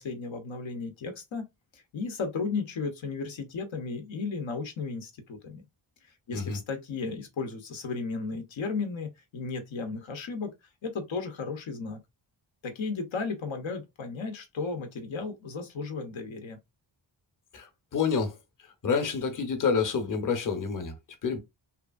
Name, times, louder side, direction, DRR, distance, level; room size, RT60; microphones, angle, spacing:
voice 1, 0.0-1.5 1.7-5.6 6.3-10.5 10.8-12.0 12.6-16.6, left 4 dB, 80° left, 0.8 m, -34 dB
voice 2, 17.5-18.4 18.8-20.9 21.2-21.4, left 5 dB, 45° left, 0.8 m, -28 dB
2.9 x 2.5 x 2.3 m
wide cardioid pair, 90°, 46 cm